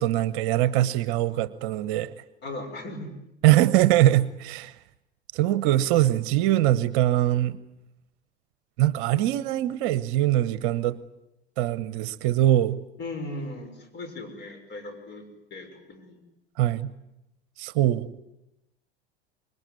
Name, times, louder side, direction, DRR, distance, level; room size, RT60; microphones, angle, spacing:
voice 1, 0.0-2.1 3.4-4.7 5.3-7.6 8.8-11.0 11.6-12.8 16.6-16.9 17.6-18.1, right 14 dB, 50° right, 17 dB, 1.0 m, -22 dB
voice 2, 2.4-3.1 13.0-16.2, left 2 dB, 35° left, 7 dB, 6.2 m, -38 dB
26.0 x 22.0 x 9.6 m, 0.89 s
figure-of-eight pair, 80°, 32 cm